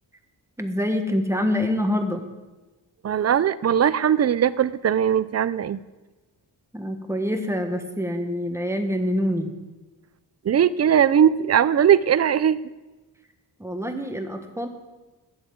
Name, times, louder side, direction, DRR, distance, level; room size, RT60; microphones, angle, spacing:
voice 1, 0.6-2.2 6.7-9.5 13.6-14.7, left 1 dB, 5° right, 5 dB, 1.3 m, -26 dB
voice 2, 3.0-5.8 10.4-12.6, right 9 dB, 40° right, 17 dB, 0.4 m, -19 dB
11.0 x 8.0 x 7.7 m, 1.2 s
wide cardioid pair, 120°, 41 cm